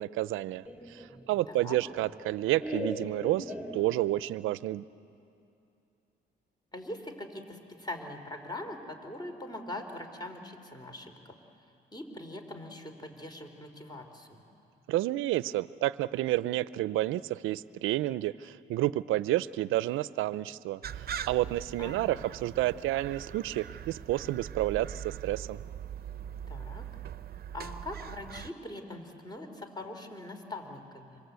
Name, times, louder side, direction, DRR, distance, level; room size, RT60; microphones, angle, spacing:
voice 1, 0.0-4.8 14.9-25.6, right 15 dB, 90° right, 18 dB, 0.5 m, -30 dB
Laughter, 0.6-4.3, left 1 dB, 5° right, 3.4 m, -40 dB
voice 2, 1.5-1.8 6.7-11.3 11.9-14.4 21.8-22.2 26.5-26.8 27.5-31.2, left 1 dB, 20° left, 5 dB, 3.6 m, -42 dB
sound 1, 20.8-28.5, right 9 dB, 50° right, 0.7 m, -41 dB
27.5 x 25.0 x 8.2 m, 2.7 s
cardioid pair, 90°, 20 cm